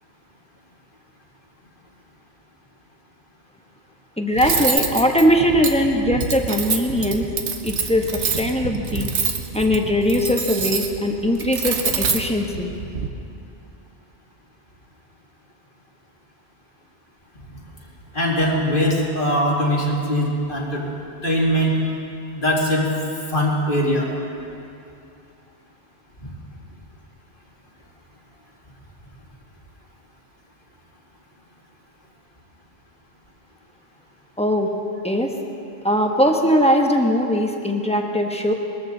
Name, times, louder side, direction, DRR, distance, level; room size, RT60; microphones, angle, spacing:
voice 1, 4.2-7.3 7.6-9.1 9.5-12.7 34.4-34.7 35.0-35.3 35.8-38.5, equal, 5° left, 2 dB, 1.1 m, -20 dB
Cutlery silverware, 4.4-13.1, right 5 dB, 80° right, 1.3 m, -26 dB
voice 2, 18.1-20.8 21.2-21.8 22.3-22.9 23.3-24.1, equal, 50° left, -3 dB, 2.6 m, -21 dB
21.5 x 14.5 x 4.0 m, 2.7 s
omnidirectional pair, 1.2 m